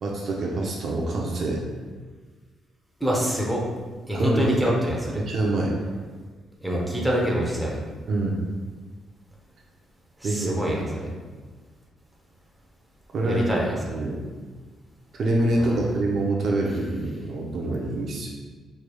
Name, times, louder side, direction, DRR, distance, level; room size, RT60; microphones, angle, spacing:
voice 1, 0.0-1.6 4.1-4.7 5.2-5.7 8.1-8.4 10.2-11.1 13.1-13.4 13.9-14.2 15.1-18.3, right 2 dB, 55° right, -1 dB, 0.5 m, -26 dB
voice 2, 3.0-3.6 4.1-5.2 6.6-7.8 10.2-10.8 13.2-13.8 15.6-15.8, equal, 5° right, -3 dB, 0.7 m, -25 dB
4.7 x 3.2 x 2.2 m, 1.4 s
cardioid pair, 125°, 0 cm